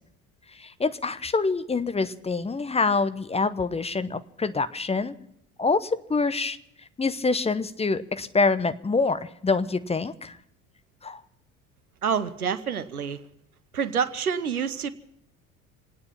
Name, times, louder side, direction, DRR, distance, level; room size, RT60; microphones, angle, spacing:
voice 1, 0.6-5.1 5.6-6.6 7.0-10.4 11.0-11.2, left 4 dB, 15° left, 12 dB, 0.8 m, -26 dB
voice 2, 12.0-13.2 13.7-14.9, right 7 dB, 85° right, 14 dB, 0.8 m, -27 dB
26.0 x 9.6 x 5.8 m, 0.77 s
figure-of-eight pair, 60°, 43 cm